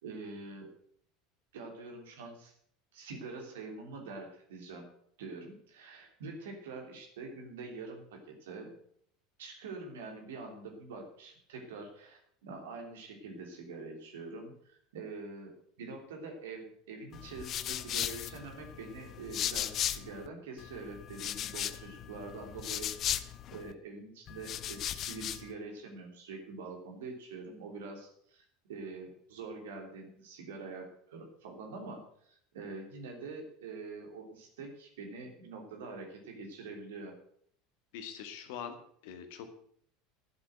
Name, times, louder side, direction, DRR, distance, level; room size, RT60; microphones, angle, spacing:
voice 1, 0.0-0.7 1.5-2.5 2.9-4.9 5.2-8.7 9.4-22.9 23.5-37.2, right 3 dB, 65° right, 3 dB, 3.3 m, -45 dB
sound 1, 17.1-20.3 20.6-23.7 24.3-25.5, left 11 dB, 40° left, 0.7 m, -37 dB
voice 2, 37.9-39.6, left 8 dB, 55° left, 7 dB, 1.9 m, -44 dB
11.5 x 8.0 x 7.9 m, 0.64 s
figure-of-eight pair, 75°, 0 cm